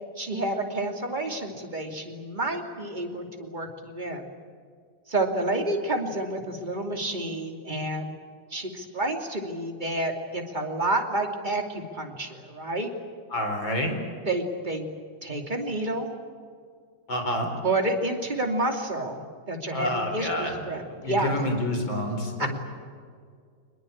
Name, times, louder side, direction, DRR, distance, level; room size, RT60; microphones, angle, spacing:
voice 1, 0.2-4.3 5.1-8.1 8.5-12.9 14.3-14.9 15.2-16.1 17.6-21.4 22.4-22.5, right 2 dB, 20° right, 3 dB, 2.8 m, -29 dB
voice 2, 13.3-14.0 17.1-17.5 19.7-20.5 21.0-22.5, left 1 dB, 65° left, 4 dB, 5.1 m, -28 dB
24.5 x 21.0 x 8.7 m, 2.1 s
omnidirectional pair, 2.3 m